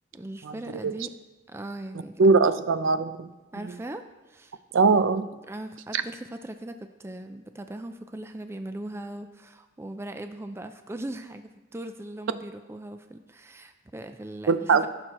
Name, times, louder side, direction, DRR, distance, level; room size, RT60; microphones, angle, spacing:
voice 1, 0.1-1.1 1.5-2.2 3.5-4.6 5.2-14.9, right 1 dB, 15° right, 8 dB, 0.4 m, -39 dB
voice 2, 2.2-3.3 4.7-5.3 5.9-6.0 14.5-14.8, right 4 dB, 75° right, 12 dB, 0.5 m, -21 dB
15.5 x 6.3 x 3.0 m, 1.2 s
head